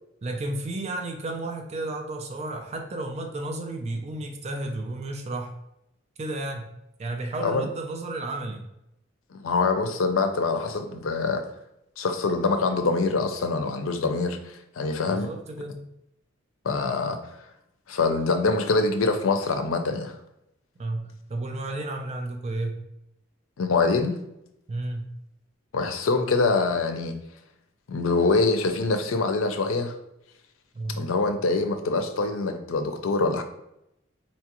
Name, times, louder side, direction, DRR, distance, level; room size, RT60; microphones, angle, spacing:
voice 1, 0.2-5.5 6.2-6.6 7.0-8.7 15.1-15.8 20.8-22.7 24.7-25.0 30.7-31.1, right 2 dB, 35° right, 3 dB, 0.4 m, -32 dB
voice 2, 9.3-11.4 12.0-15.3 16.6-17.2 17.9-20.1 23.6-24.2 25.7-27.1 27.9-29.9 31.0-33.4, left 3 dB, 85° left, 6 dB, 0.5 m, -24 dB
4.1 x 2.4 x 2.9 m, 0.83 s
head